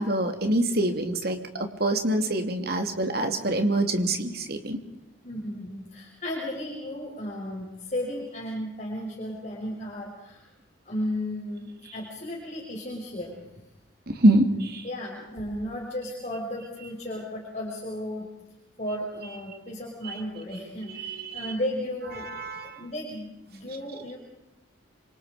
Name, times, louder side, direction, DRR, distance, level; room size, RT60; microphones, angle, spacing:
voice 1, 0.0-4.8 14.1-14.8 20.0-20.2 20.9-21.5 22.2-22.8, right 1 dB, 50° right, 5 dB, 3.0 m, -25 dB
voice 2, 5.2-10.4 10.9-13.5 14.8-18.3 18.8-22.3 22.8-24.2, left 1 dB, 35° left, -3 dB, 5.7 m, -34 dB
29.0 x 26.0 x 5.2 m, 0.94 s
head